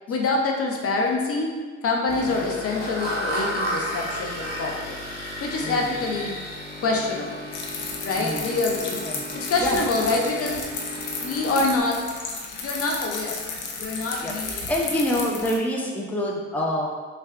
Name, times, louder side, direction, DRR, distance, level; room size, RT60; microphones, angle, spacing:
voice 1, 0.1-1.5 1.8-5.0 5.4-6.3 6.8-7.4 8.0-9.0 9.3-10.6 11.2-12.0 12.6-13.4 13.8-14.6, left 3 dB, 50° left, 0 dB, 0.6 m, -25 dB
sound 1, 2.1-11.8, equal, 30° left, 1.1 m, -33 dB
voice 2, 5.6-6.0 8.1-8.5 9.1-9.2 9.6-9.8 14.2-16.9, left 1 dB, 5° left, -2 dB, 0.5 m, -27 dB
sound 2, 7.5-15.6, left 4 dB, 85° left, 0.7 m, -33 dB
5.4 x 2.2 x 2.4 m, 1.5 s
cardioid pair, 90°, 30 cm